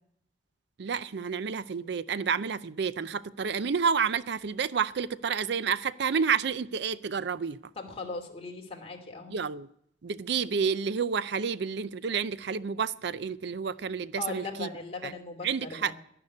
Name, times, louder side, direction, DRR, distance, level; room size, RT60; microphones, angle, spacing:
voice 1, 0.8-7.6 9.3-9.7 10.0-14.7 15.0-15.1 15.4-15.9, right 6 dB, 65° right, 0.5 m, -30 dB
voice 2, 7.8-9.4 14.2-15.9, left 3 dB, 35° left, 2.7 m, -39 dB
11.5 x 11.0 x 9.5 m
head